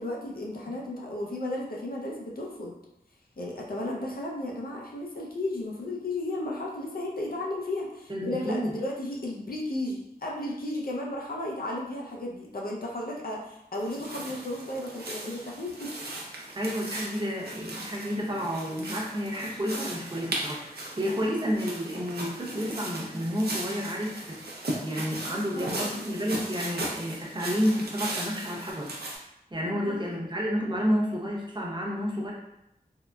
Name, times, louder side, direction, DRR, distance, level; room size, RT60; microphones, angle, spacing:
voice 1, 0.0-2.8 3.4-15.9 21.0-21.3 25.5-26.0 29.6-30.2, left 1 dB, 65° left, -2 dB, 0.5 m, -34 dB
voice 2, 8.1-8.7 16.5-24.4 24.8-28.9 29.5-32.3, equal, 30° right, -4 dB, 0.8 m, -30 dB
sound 1, 13.8-29.2, right 1 dB, 80° right, 0.6 m, -37 dB
3.7 x 2.0 x 2.2 m, 0.86 s
wide cardioid pair, 50°, 16 cm